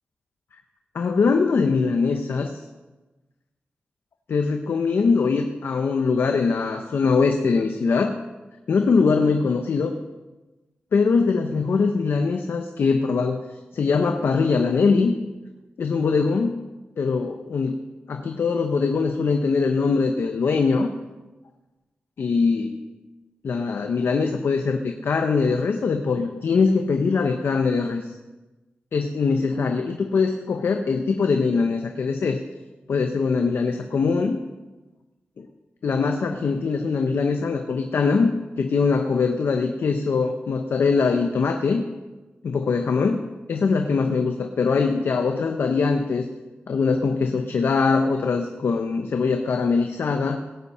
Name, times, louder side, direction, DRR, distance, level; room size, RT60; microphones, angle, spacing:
voice 1, 0.9-2.6 4.3-8.2 8.7-10.0 10.9-13.4 13.7-15.1 15.8-16.6 17.0-17.8 18.1-20.9 22.2-22.8 23.4-28.1 28.9-32.4 32.9-34.4 35.4-35.5 35.8-41.8 42.4-46.3 46.7-50.4, left 4 dB, 80° left, 5 dB, 0.9 m, -22 dB
18.0 x 8.5 x 5.5 m, 1.1 s
wide cardioid pair, 130°, 4 cm